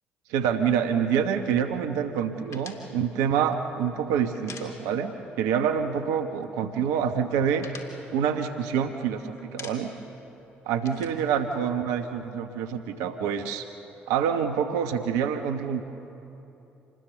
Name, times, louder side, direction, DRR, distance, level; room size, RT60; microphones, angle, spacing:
voice 1, 0.3-7.7 8.1-9.9 10.7-13.7 14.1-15.8, right 7 dB, 75° right, 8 dB, 1.1 m, -26 dB
sound 1, 2.5-5.3 5.6-5.7 6.0-6.7 7.1-9.1 9.4-10.1 10.4-12.2, left 4 dB, 60° left, 2.8 m, -46 dB
27.0 x 20.0 x 7.0 m, 3.0 s
hypercardioid pair, 45°, 6 cm